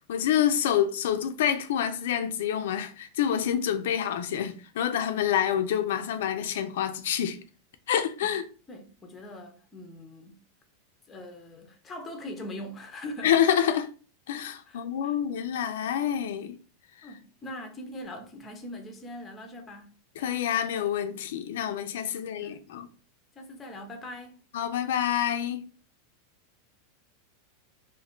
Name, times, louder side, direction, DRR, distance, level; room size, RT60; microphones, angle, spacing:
voice 1, 0.1-7.4 7.9-8.4 13.2-13.9 14.3-16.6 20.2-22.9 24.5-25.7, left 9 dB, 75° left, 0.4 m, -27 dB
voice 2, 8.7-10.4 11.1-13.3 14.7-15.2 17.0-19.9 22.1-22.6 23.3-24.4, left 1 dB, 15° left, 0.5 m, -42 dB
2.5 x 2.3 x 3.6 m
supercardioid pair, 170°, 0 cm